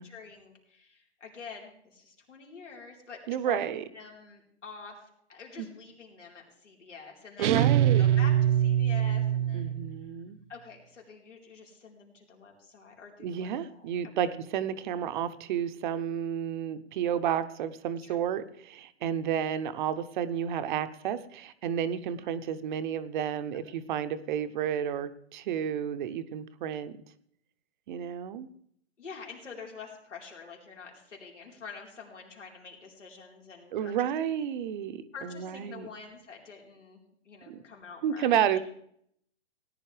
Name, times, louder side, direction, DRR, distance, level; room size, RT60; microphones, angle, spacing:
voice 1, 0.0-3.6 3.9-9.8 10.5-14.3 18.0-18.2 22.2-22.3 29.0-34.1 35.1-37.0 37.2-38.6, left 5 dB, 85° left, -1 dB, 4.1 m, -47 dB
voice 2, 3.3-3.8 5.6-5.7 7.4-8.0 9.5-10.4 13.2-27.0 27.9-28.5 33.7-35.9 37.5-37.6 38.0-38.6, right 9 dB, 45° right, 12 dB, 0.7 m, -31 dB
sound 1, 7.4-10.0, right 11 dB, 80° right, 0.5 m, -24 dB
18.0 x 10.5 x 3.3 m, 0.69 s
hypercardioid pair, 135°, 35 cm